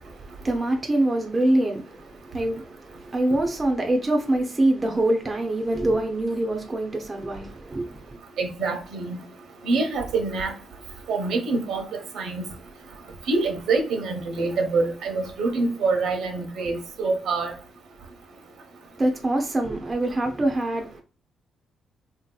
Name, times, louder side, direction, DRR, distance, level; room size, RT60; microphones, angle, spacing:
voice 1, 0.0-8.2 19.0-21.0, right 1 dB, 20° right, 0.5 m, -25 dB
voice 2, 8.4-9.2 9.6-10.5 11.1-12.5 13.3-17.5, right 3 dB, 70° right, 0.8 m, -25 dB
3.6 x 2.7 x 2.2 m
cardioid pair, 160°, 0 cm